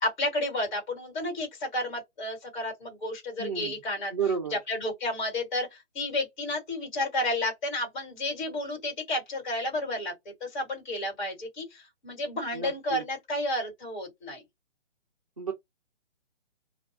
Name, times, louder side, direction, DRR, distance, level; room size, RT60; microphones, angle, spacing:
voice 1, 0.0-4.1 4.7-10.1 10.4-14.4, left 1 dB, 35° left, 1.6 m, -31 dB
voice 2, 3.4-3.8 4.1-4.6 12.5-13.0 15.4-15.5, right 6 dB, 30° right, 0.4 m, -31 dB
2.3 x 2.3 x 2.7 m
hypercardioid pair, 155°, 38 cm